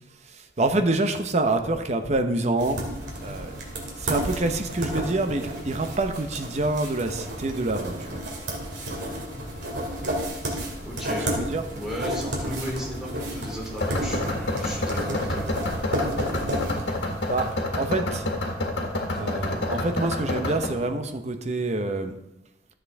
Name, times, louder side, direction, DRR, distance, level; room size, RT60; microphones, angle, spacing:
voice 1, 0.6-2.8 3.2-3.5 4.0-8.2 11.1-11.6 17.3-18.3 19.2-22.1, right 2 dB, 40° right, 7 dB, 0.8 m, -26 dB
sound 1, 2.6-17.4, right 1 dB, 80° right, 2.2 m, -32 dB
sound 2, 3.0-20.7, left 1 dB, 75° left, 1.7 m, -32 dB
voice 2, 10.8-11.3 11.7-15.5, equal, 5° right, -5 dB, 3.3 m, -35 dB
12.5 x 7.5 x 3.5 m, 0.87 s
head